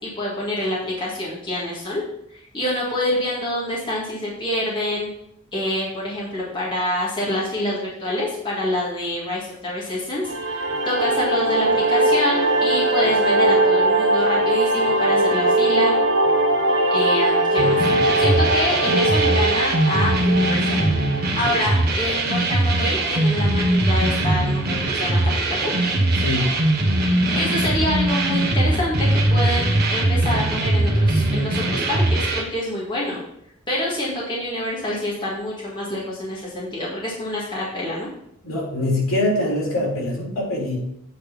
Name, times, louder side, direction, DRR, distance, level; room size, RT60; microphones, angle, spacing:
voice 1, 0.0-2.0 2.3-5.1 5.5-16.0 16.9-20.8 21.1-25.2 25.5-25.7 26.9-33.2 33.7-38.1, left 1 dB, 25° left, -6 dB, 1.9 m, -26 dB
sound 1, 10.2-21.3, right 1 dB, 65° right, 0.9 m, -20 dB
sound 2, 17.6-32.4, right 1 dB, 50° right, 1.3 m, -21 dB
voice 2, 26.2-26.5 38.4-40.8, left 1 dB, 70° left, -4 dB, 3.4 m, -23 dB
8.6 x 4.1 x 5.4 m, 0.77 s
head